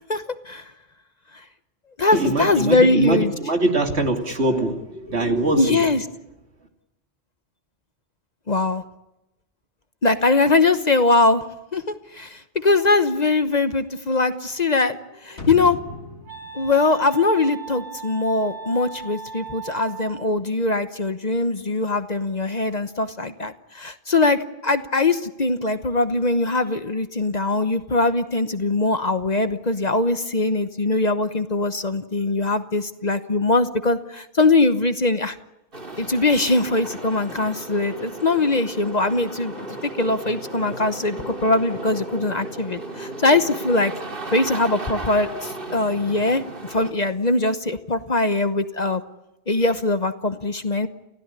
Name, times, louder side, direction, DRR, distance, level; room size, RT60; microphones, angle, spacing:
voice 1, 0.1-0.6 2.0-3.3 5.6-6.0 8.5-8.8 10.0-11.4 11.7-11.8 12.1-15.0 15.2-15.8 16.5-35.4 36.0-39.5 40.0-43.9 44.3-49.0 49.5-50.9, left 2 dB, 40° left, 10 dB, 1.1 m, -21 dB
voice 2, 2.1-5.9, right 2 dB, 70° right, 4 dB, 3.0 m, -23 dB
Wind instrument woodwind instrument, 15.1-20.4, right 6 dB, 20° right, 2.4 m, -38 dB
sound 1, 15.4-18.2 18.5-18.6, left 2 dB, 80° left, 2.3 m, -37 dB
sound 2, 35.7-46.9, right 2 dB, 50° right, 3.1 m, -35 dB
29.0 x 16.0 x 9.8 m, 0.92 s
omnidirectional pair, 1.2 m